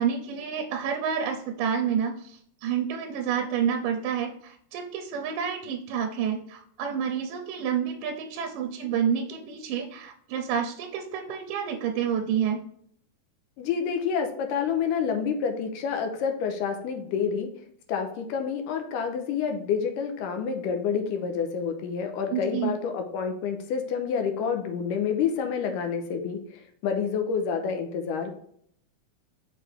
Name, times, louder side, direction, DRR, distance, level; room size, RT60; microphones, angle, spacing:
voice 1, 0.0-12.6 22.3-22.7, right 8 dB, 80° right, 3 dB, 2.1 m, -29 dB
voice 2, 13.6-17.5 17.9-28.3, left 6 dB, 75° left, 5 dB, 2.2 m, -28 dB
6.5 x 4.8 x 3.3 m, 0.65 s
omnidirectional pair, 4.2 m